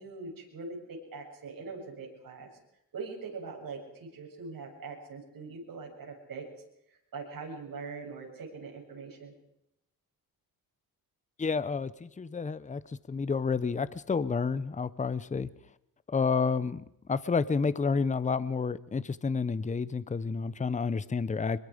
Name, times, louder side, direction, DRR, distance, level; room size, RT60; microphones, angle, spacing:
voice 1, 0.0-2.5 2.9-6.5 7.1-9.3, right 4 dB, 60° right, 0 dB, 7.7 m, -42 dB
voice 2, 11.4-12.8 13.1-15.5 16.1-21.6, left 5 dB, 20° left, 17 dB, 0.7 m, -30 dB
25.5 x 23.0 x 5.1 m, 0.80 s
cardioid pair, 115°, 38 cm